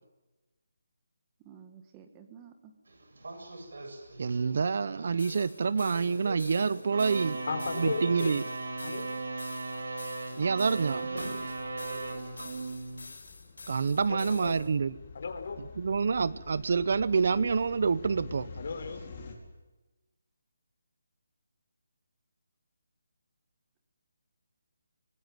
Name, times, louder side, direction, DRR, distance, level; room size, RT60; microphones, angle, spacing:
voice 1, 1.4-2.7, right 8 dB, 15° right, 7 dB, 1.7 m, -52 dB
sound 1, 2.9-13.0, right 3 dB, 75° right, 7.6 m, -38 dB
voice 2, 4.2-7.4 7.8-8.4 10.4-11.1 13.7-14.9 15.8-18.5, right 5 dB, 50° right, 18 dB, 0.8 m, -27 dB
sound 2, 5.2-14.7, left 3 dB, 80° left, 7.1 m, -48 dB
voice 3, 7.5-8.3 8.8-9.1 10.8-11.3 14.1-14.5 15.1-15.7 18.6-19.0, left 4 dB, 50° left, 7 dB, 3.9 m, -36 dB
sound 3, 12.1-19.3, left 3 dB, 30° left, 4.5 m, -48 dB
24.0 x 20.0 x 9.4 m, 1.1 s
hypercardioid pair, 170°, 0 cm